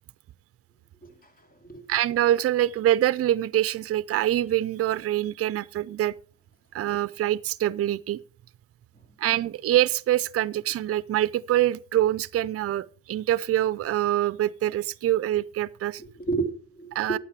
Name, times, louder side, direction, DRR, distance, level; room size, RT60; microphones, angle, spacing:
voice 1, 1.0-1.8 8.9-9.1 16.0-17.1, right 4 dB, 30° left, 2.7 m, -33 dB
voice 2, 1.9-6.2 6.7-8.2 9.2-16.0 16.9-17.2, right 13 dB, 50° right, 0.5 m, -25 dB
9.8 x 8.7 x 4.7 m
cardioid pair, 90°, 30 cm